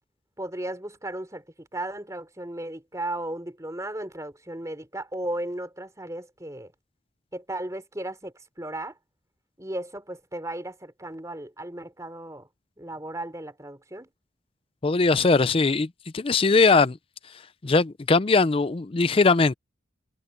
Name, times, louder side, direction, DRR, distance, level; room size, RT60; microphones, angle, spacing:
voice 1, 0.4-6.7 7.3-9.0 9.6-12.5 12.8-14.1, right 1 dB, 15° right, 3.7 m, -35 dB
voice 2, 14.8-15.9 16.1-17.0 17.6-19.5, left 4 dB, 30° left, 0.5 m, -20 dB
head